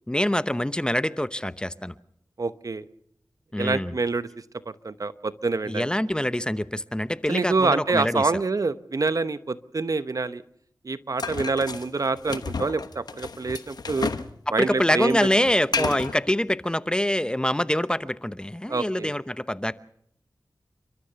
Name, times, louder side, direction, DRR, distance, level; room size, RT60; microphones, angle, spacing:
voice 1, 0.1-1.9 3.5-4.0 5.7-8.3 14.6-19.7, left 1 dB, 15° left, 14 dB, 0.9 m, -25 dB
voice 2, 2.4-2.8 3.6-4.3 4.7-5.9 7.3-10.4 10.8-14.1 14.5-15.2 15.8-16.0 18.7-19.1, right 3 dB, 60° right, 14 dB, 0.9 m, -26 dB
sound 1, 11.2-14.3 14.6-16.2, left 4 dB, 80° left, 1.1 m, -32 dB
29.5 x 13.5 x 6.9 m, 0.69 s
cardioid pair, 45°, 7 cm